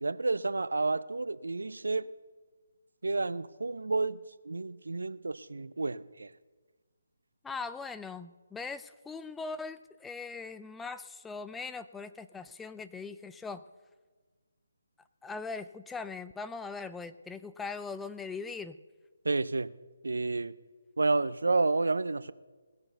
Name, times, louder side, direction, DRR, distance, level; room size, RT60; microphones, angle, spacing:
voice 1, 0.0-2.1 3.0-4.2 4.5-6.3 19.2-19.7 20.0-20.5 21.0-22.3, right 3 dB, 70° right, 0.5 m, -30 dB
voice 2, 7.4-13.6 15.2-18.8, left 4 dB, 5° left, 0.3 m, -40 dB
18.5 x 6.8 x 6.8 m
figure-of-eight pair, 145°, 0 cm